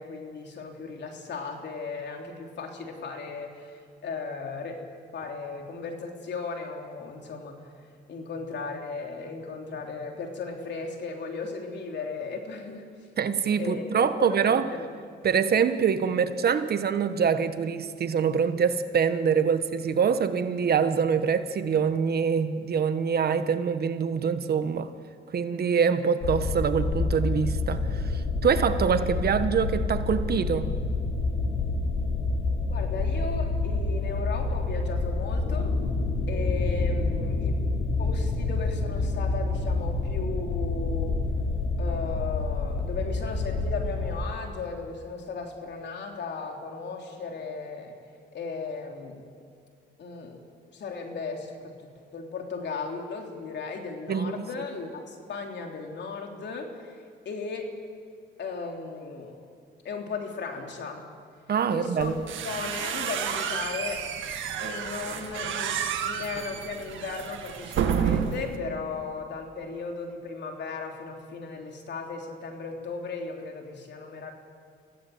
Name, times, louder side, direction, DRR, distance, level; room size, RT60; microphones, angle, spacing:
voice 1, 0.0-4.8 5.1-7.7 8.1-12.8 13.6-14.9 32.7-35.7 36.3-37.6 38.0-41.2 41.8-48.0 48.3-49.3 50.0-50.4 50.7-51.7 52.1-57.7 58.4-59.4 59.8-61.1 61.7-62.2 62.4-64.1 64.6-74.3, left 4 dB, 60° left, 2 dB, 3.4 m, -36 dB
voice 2, 13.2-14.7 15.2-24.9 25.3-30.7 54.1-54.5 61.5-62.1, right 6 dB, 50° right, 10 dB, 1.3 m, -25 dB
sound 1, 26.2-44.2, left 3 dB, 80° left, 3.0 m, -28 dB
sound 2, 62.0-68.6, right 8 dB, 80° right, 2.0 m, -30 dB
25.0 x 16.5 x 8.0 m, 2.2 s
cardioid pair, 90°, 20 cm